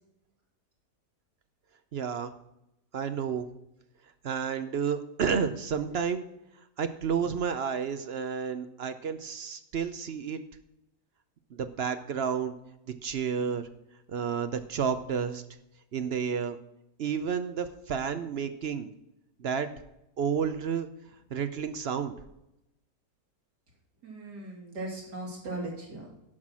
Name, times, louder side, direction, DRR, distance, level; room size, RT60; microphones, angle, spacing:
voice 1, 1.9-2.3 2.9-3.5 4.2-6.2 6.8-10.4 11.5-12.5 13.0-13.7 14.1-15.4 15.9-16.6 17.0-18.9 19.4-19.7 20.2-20.9 21.3-22.1, right 7 dB, 55° right, 10 dB, 0.7 m, -31 dB
voice 2, 24.0-26.1, right 2 dB, 90° right, -2 dB, 3.5 m, -38 dB
11.0 x 5.8 x 6.1 m, 0.86 s
omnidirectional pair, 1.7 m